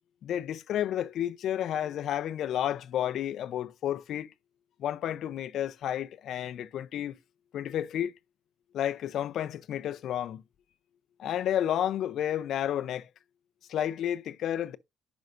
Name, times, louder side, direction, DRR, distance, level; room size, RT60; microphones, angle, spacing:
voice 1, 0.2-4.3 4.8-7.2 7.5-8.1 8.7-10.4 11.2-13.1 13.7-14.8, left 10 dB, 60° left, 0.5 m, -31 dB
10.5 x 5.2 x 2.5 m
cardioid pair, 135°, 0 cm